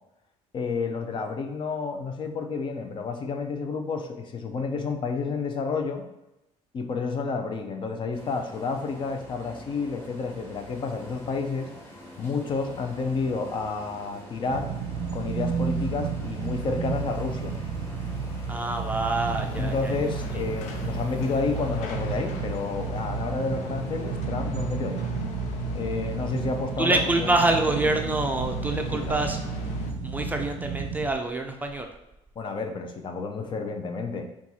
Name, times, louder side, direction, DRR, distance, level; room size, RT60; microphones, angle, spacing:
voice 1, 0.5-6.0 6.7-11.7 12.2-14.7 15.1-17.5 19.5-25.0 25.7-27.3 28.9-29.2 32.4-34.3, left 4 dB, 40° left, 5 dB, 0.6 m, -30 dB
sound 1, 8.1-24.2, left 1 dB, 20° left, 1.4 m, -46 dB
sound 2, 14.5-31.1, right 5 dB, 85° right, 0.5 m, -32 dB
voice 2, 18.5-19.9 26.8-29.4 30.0-31.9, right 2 dB, 15° right, 3 dB, 0.4 m, -26 dB
sound 3, 19.3-29.9, left 3 dB, 85° left, 0.6 m, -39 dB
4.4 x 2.4 x 4.1 m, 0.91 s
cardioid pair, 115°, 12 cm